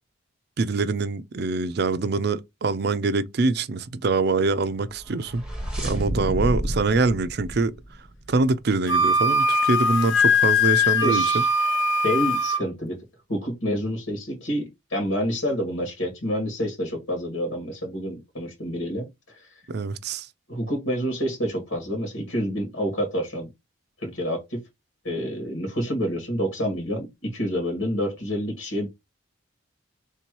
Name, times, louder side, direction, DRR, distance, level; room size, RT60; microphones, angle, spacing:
voice 1, 0.6-5.4 5.8-7.7 8.3-11.4 19.7-20.3, right 3 dB, 50° right, 0.4 m, -24 dB
sound 1, 4.9-8.5, equal, 5° right, 0.9 m, -30 dB
Wind instrument woodwind instrument, 8.9-12.6, left 2 dB, 65° left, 0.8 m, -21 dB
voice 2, 11.0-11.5 12.0-13.0 13.3-19.1 19.4-19.5 20.5-23.5 24.0-24.6 25.0-28.9, equal, 85° left, 2.0 m, -28 dB
3.4 x 2.9 x 4.6 m
head